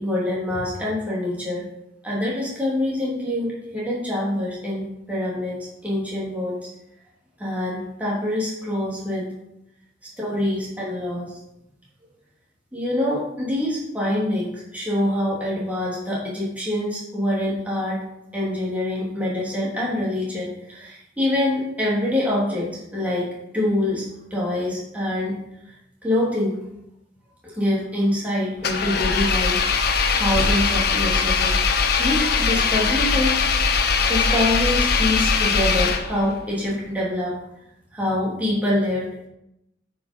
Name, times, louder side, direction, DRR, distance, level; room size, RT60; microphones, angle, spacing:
voice 1, 0.0-1.7 2.0-6.6 7.4-9.3 10.2-11.4 12.7-18.0 18.3-25.4 26.0-26.6 27.4-31.6 32.0-33.4 34.1-37.4 37.9-39.3, left 1 dB, 10° right, -6 dB, 2.9 m, -25 dB
Engine, 28.6-36.4, left 5 dB, 55° left, 0.8 m, -21 dB
9.0 x 5.6 x 5.3 m, 0.83 s
head